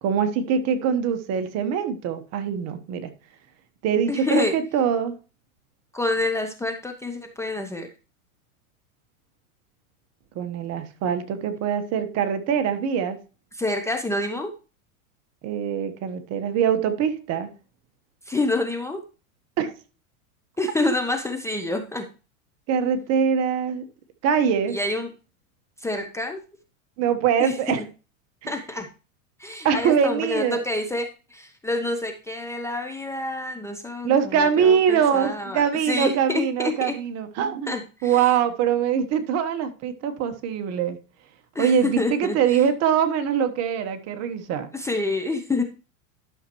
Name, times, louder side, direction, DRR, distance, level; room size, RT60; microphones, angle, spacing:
voice 1, 0.0-3.1 3.8-5.2 10.3-13.2 15.4-17.5 19.6-19.7 22.7-23.9 24.2-24.8 27.0-27.8 28.4-28.5 29.6-30.6 34.0-37.8 38.0-41.0 41.6-44.7, right 7 dB, 35° right, 1.2 m, -23 dB
voice 2, 4.1-4.5 5.9-7.9 13.5-14.5 18.3-19.0 20.6-22.0 24.7-25.1 25.8-26.4 27.4-27.6 28.5-28.9 29.4-36.9 37.7-38.3 41.5-42.6 44.7-45.6, left 2 dB, 5° left, 0.8 m, -27 dB
11.5 x 6.6 x 3.0 m
supercardioid pair, 130°, 42 cm